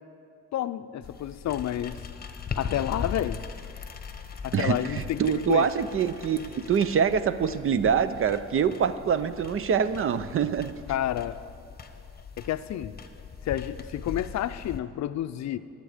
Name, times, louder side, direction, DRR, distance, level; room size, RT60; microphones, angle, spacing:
voice 1, 0.5-2.0 2.6-3.4 4.4-5.6 10.9-11.4 12.4-12.9 13.4-15.6, left 12 dB, 65° left, 12 dB, 0.5 m, -30 dB
sound 1, 1.0-14.8, left 6 dB, 30° left, 1.1 m, -40 dB
voice 2, 4.5-10.7, right 7 dB, 45° right, 14 dB, 0.6 m, -25 dB
22.0 x 8.2 x 5.0 m, 2.5 s
cardioid pair, 90°, 30 cm